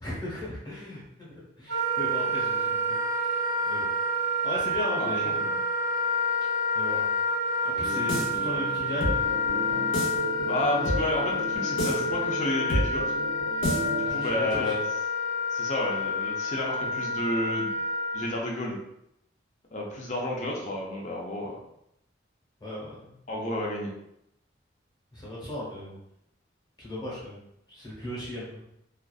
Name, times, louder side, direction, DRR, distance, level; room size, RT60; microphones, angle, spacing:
voice 1, 0.0-3.9 4.4-5.4 6.7-7.1 7.6-9.2 9.7-9.8 14.0-14.7 22.6-23.2 25.1-26.0 26.8-27.4 27.7-28.6, left 1 dB, 20° left, -7 dB, 0.9 m, -37 dB
Wind instrument woodwind instrument, 1.7-18.3, left 1 dB, 65° right, 0.5 m, -28 dB
voice 2, 5.0-5.5 10.5-13.0 13.9-14.8 15.5-17.7 18.1-18.8 19.7-21.5 23.3-23.9, left 1 dB, 40° left, -1 dB, 0.5 m, -31 dB
sound 1, 7.7-14.3, equal, 90° left, 0.7 m, -31 dB
2.5 x 2.3 x 2.3 m, 0.78 s
head